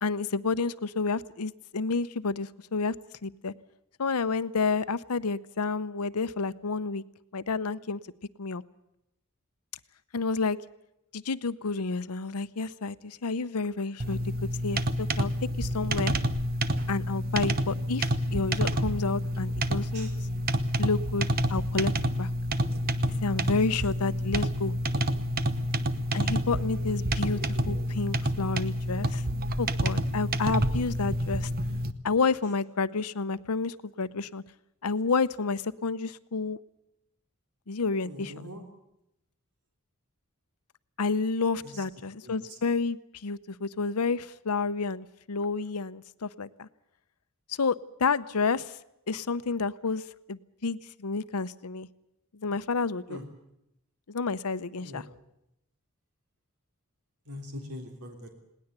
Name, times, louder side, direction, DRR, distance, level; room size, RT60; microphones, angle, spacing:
voice 1, 0.0-2.9 3.2-3.5 4.0-7.0 7.3-8.0 8.4-8.6 10.1-10.6 11.1-14.2 14.6-15.3 15.6-16.1 16.9-20.1 20.8-21.9 22.2-22.3 23.2-24.7 26.1-27.4 27.7-29.2 29.6-31.5 32.0-34.4 34.8-36.6 37.7-38.5 41.0-46.7 47.5-48.7 49.1-50.0 50.3-51.9 52.4-53.2 54.1-55.1, left 4 dB, 90° left, 15 dB, 0.8 m, -30 dB
sound 1, 14.0-31.9, right 1 dB, 45° right, 1.0 m, -28 dB
voice 2, 38.0-38.6 41.6-41.7 42.2-42.3 53.1-53.3 54.8-55.0 57.3-58.3, left 1 dB, 85° right, 3 dB, 3.4 m, -42 dB
20.5 x 18.5 x 8.1 m, 0.83 s
head